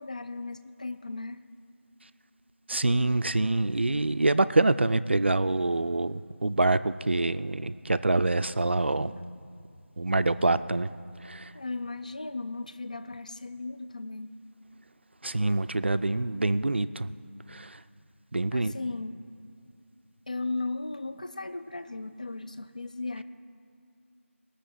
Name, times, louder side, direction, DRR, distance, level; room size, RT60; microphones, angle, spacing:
voice 1, 0.0-1.4 11.5-14.3 18.5-19.2 20.3-23.2, left 3 dB, 35° left, 12 dB, 0.4 m, -36 dB
voice 2, 2.7-9.1 10.0-10.9 11.2-11.5 15.2-17.1 17.5-17.8 18.3-18.7, right 2 dB, 50° right, 14 dB, 0.4 m, -26 dB
19.5 x 6.6 x 7.6 m, 2.4 s
figure-of-eight pair, 175°, 7 cm